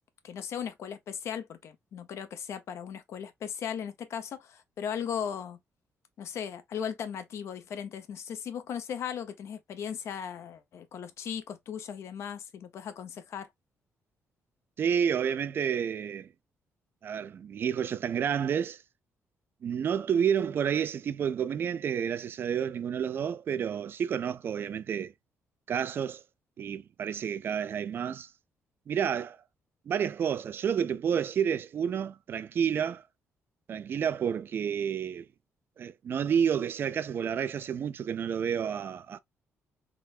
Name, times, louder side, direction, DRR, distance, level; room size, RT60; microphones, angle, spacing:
voice 1, 0.2-5.6 6.2-13.5, left 8 dB, 65° left, 0.7 m, -37 dB
voice 2, 14.8-16.3 17.0-18.8 19.6-25.1 25.7-26.2 26.6-28.3 28.9-29.4 29.9-33.0 33.7-35.3 35.8-39.2, right 8 dB, 50° right, 0.4 m, -30 dB
3.7 x 3.3 x 2.5 m
cardioid pair, 135°, 5 cm